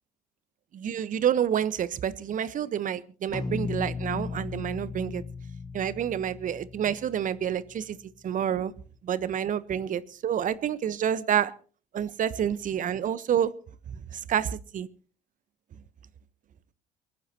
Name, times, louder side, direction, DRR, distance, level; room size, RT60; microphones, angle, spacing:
voice 1, 0.7-5.2 5.7-8.0 8.2-8.7 9.0-11.5 11.9-13.5 14.1-14.9, right 9 dB, 45° right, 1.1 m, -28 dB
sound 1, 3.3-7.9, left 4 dB, 20° left, 1.2 m, -36 dB
24.0 x 15.5 x 3.0 m
hypercardioid pair, 55°, 18 cm